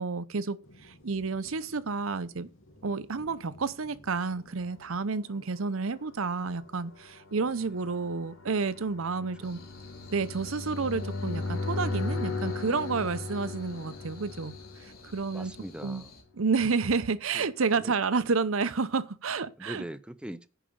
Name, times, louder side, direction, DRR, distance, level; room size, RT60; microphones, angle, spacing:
voice 1, 0.0-2.5 2.8-9.6 10.1-14.6 14.8-15.5 15.8-16.0 16.4-19.8, right 4 dB, 75° right, 0.7 m, -30 dB
sound 1, 0.6-9.0, left 1 dB, 70° left, 2.6 m, -59 dB
sound 2, 5.0-15.8, left 3 dB, 90° left, 2.2 m, -37 dB
sound 3, 9.4-16.2, left 3 dB, 50° left, 2.7 m, -52 dB
voice 2, 15.3-16.1 17.3-17.5 17.8-18.0 19.6-20.5, right 1 dB, 5° right, 0.6 m, -41 dB
10.0 x 5.0 x 7.0 m
head